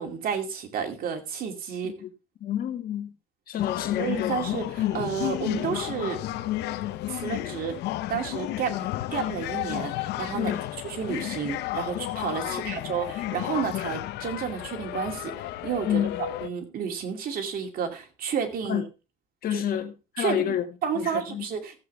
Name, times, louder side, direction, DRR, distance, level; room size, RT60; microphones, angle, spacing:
voice 1, 0.0-1.9 4.0-6.2 7.1-7.7 8.1-10.5 10.8-18.8 19.5-19.6 20.2-20.6 20.8-21.7, right 7 dB, 60° right, 2.5 m, -31 dB
voice 2, 2.4-3.1 3.5-4.4 10.3-10.7 12.4-13.0 15.8-16.2 18.7-18.8 19.4-20.7 20.9-21.4, left 10 dB, 60° left, 1.7 m, -29 dB
sound 1, 3.6-16.5, left 15 dB, 80° left, 0.7 m, -32 dB
15.0 x 8.0 x 3.3 m
cardioid pair, 110°, 17 cm